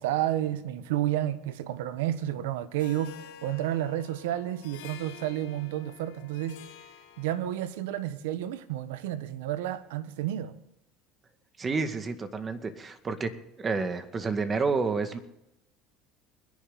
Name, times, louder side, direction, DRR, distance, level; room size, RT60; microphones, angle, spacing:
voice 1, 0.0-6.6 7.2-10.5, right 12 dB, 85° right, 1.1 m, -31 dB
Harp, 2.8-7.8, left 7 dB, 85° left, 3.2 m, -49 dB
voice 2, 11.6-13.3 13.6-15.2, right 4 dB, 30° right, 2.0 m, -29 dB
23.5 x 10.5 x 4.0 m
supercardioid pair, 90°, 0 cm